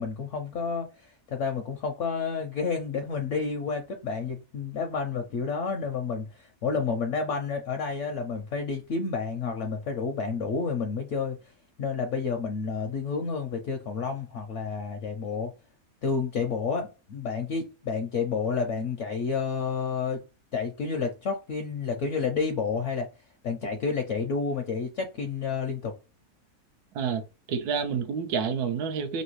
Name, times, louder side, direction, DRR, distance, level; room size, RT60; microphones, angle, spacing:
voice 1, 0.0-11.5 11.8-15.5 16.0-20.2 20.5-23.1 23.4-25.9, left 5 dB, 70° left, 0.7 m, -30 dB
voice 2, 27.5-29.2, right 6 dB, 85° right, 1.1 m, -28 dB
3.2 x 2.7 x 3.0 m
omnidirectional pair, 1.6 m